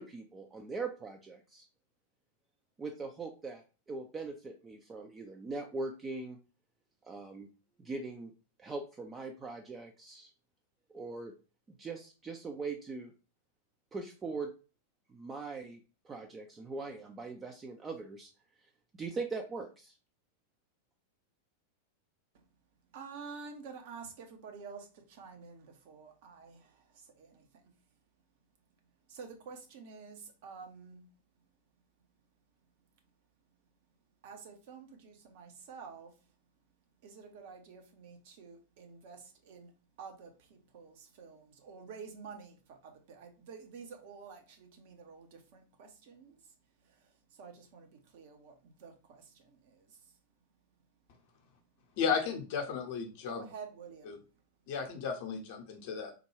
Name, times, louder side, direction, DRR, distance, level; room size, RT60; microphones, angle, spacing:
voice 1, 0.0-1.7 2.8-6.4 7.0-7.5 7.8-8.3 8.6-10.3 10.9-11.3 11.8-13.1 13.9-14.5 15.1-15.8 16.0-18.3 19.0-19.9, right 3 dB, 20° right, 3 dB, 0.4 m, -41 dB
voice 2, 22.9-24.8 25.2-26.6 29.1-31.0 34.2-36.1 37.0-39.2 39.5-39.7 40.0-40.3 40.7-42.5 43.1-45.3 45.5-46.3 47.4-47.9 48.1-48.5 48.8-48.9 53.3-54.1, right 5 dB, 50° right, 4 dB, 0.7 m, -48 dB
voice 3, 52.0-53.5 54.0-54.2 54.7-56.1, left 6 dB, 50° left, 3 dB, 0.7 m, -34 dB
3.6 x 2.2 x 3.1 m, 0.33 s
figure-of-eight pair, 90°, 0 cm